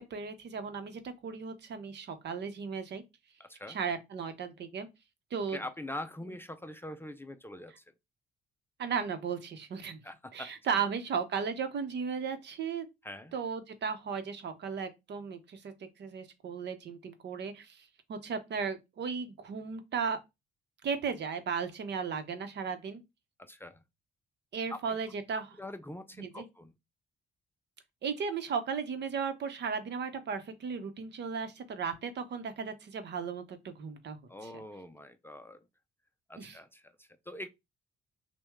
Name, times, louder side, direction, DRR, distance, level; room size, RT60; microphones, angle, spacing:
voice 1, 0.1-3.0 3.7-4.9 5.3-5.6 8.8-10.0 10.3-12.9 13.3-20.2 20.8-23.0 24.5-25.5 26.2-26.4 28.0-34.2 36.4-36.6, right 6 dB, 60° right, 0.9 m, -35 dB
voice 2, 3.4-3.8 5.5-7.8 10.0-10.5 13.0-13.3 23.4-23.8 24.7-25.0 25.6-26.7 34.3-35.7 36.3-37.5, left 1 dB, 10° left, 0.5 m, -43 dB
6.0 x 2.2 x 3.6 m
cardioid pair, 90°, 20 cm